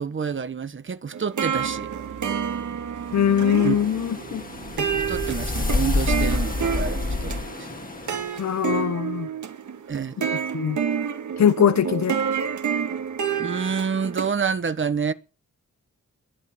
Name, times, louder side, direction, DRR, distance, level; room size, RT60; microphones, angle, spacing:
voice 1, 0.0-1.9 3.6-3.8 4.8-7.3 7.6-7.7 9.9-10.1 13.4-15.1, right 6 dB, 40° right, 1.3 m, -28 dB
sound 1, 1.1-14.3, right 7 dB, 70° right, 2.1 m, -29 dB
sound 2, 1.5-6.8, right 8 dB, 85° right, 2.1 m, -43 dB
voice 2, 3.1-4.4 8.4-9.3 10.2-10.8 11.4-12.2, left 9 dB, 65° left, 0.9 m, -22 dB
sound 3, 3.2-8.5, left 3 dB, 30° left, 2.0 m, -28 dB
21.5 x 8.5 x 6.0 m
wide cardioid pair, 130°, 30 cm